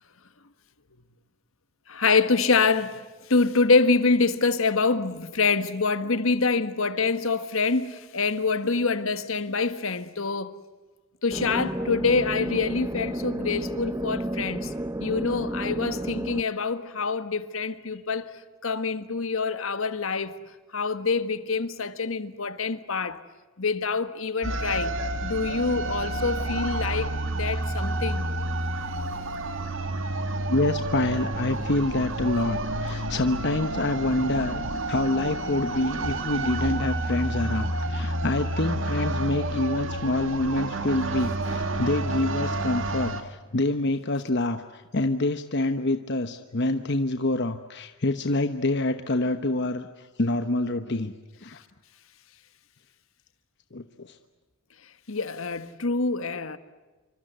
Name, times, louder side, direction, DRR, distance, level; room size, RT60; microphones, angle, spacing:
voice 1, 1.9-3.0 3.3-10.5 11.2-14.7 15.0-18.4 18.6-20.3 20.7-23.2 23.6-28.3 55.1-56.6, left 4 dB, 70° left, 1.5 m, -25 dB
sound 1, 11.3-16.4, right 1 dB, 15° right, 0.8 m, -31 dB
sound 2, 24.4-43.2, right 2 dB, 60° right, 2.3 m, -29 dB
voice 2, 30.5-34.6 34.9-49.9 50.2-51.1 51.4-51.6 53.7-54.2, left 2 dB, 55° left, 1.1 m, -26 dB
27.5 x 25.0 x 8.0 m
head